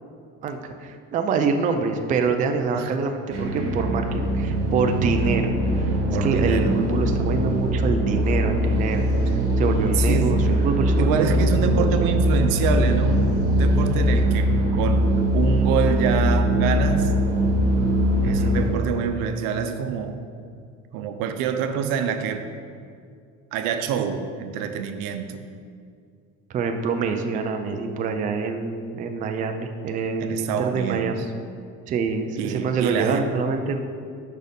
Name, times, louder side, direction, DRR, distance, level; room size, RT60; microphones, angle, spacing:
voice 1, 0.4-5.5 5.8-5.9 6.2-9.1 9.6-12.1 18.2-18.6 26.5-31.2 31.9-33.8, right 5 dB, 25° right, 5 dB, 0.3 m, -26 dB
sound 1, 3.3-18.7, equal, 45° right, 1.8 m, -21 dB
voice 2, 6.1-6.8 9.9-10.5 11.0-17.1 18.2-20.2 20.9-22.4 23.5-25.4 30.2-31.1 32.4-33.3, right 7 dB, 85° right, 7 dB, 0.7 m, -26 dB
6.4 x 5.2 x 5.2 m, 2.3 s
cardioid pair, 165°, 32 cm